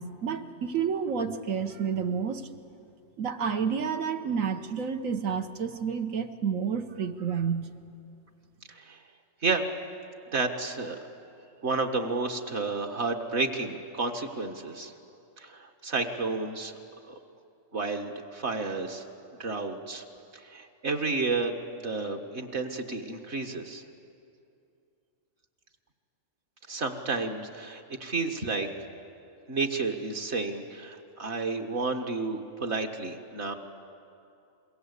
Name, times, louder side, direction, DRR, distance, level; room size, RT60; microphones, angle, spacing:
voice 1, 0.0-2.5 3.2-7.7, right 6 dB, 80° right, 7 dB, 1.4 m, -30 dB
voice 2, 8.7-9.0 9.4-9.7 10.3-11.0 11.6-14.9 15.4-16.7 17.1-17.2 17.7-19.1 19.4-20.0 20.3-23.8 26.7-28.7 29.5-33.5, right 3 dB, 55° right, 4 dB, 1.8 m, -31 dB
26.5 x 22.0 x 8.3 m, 2.6 s
omnidirectional pair, 1.4 m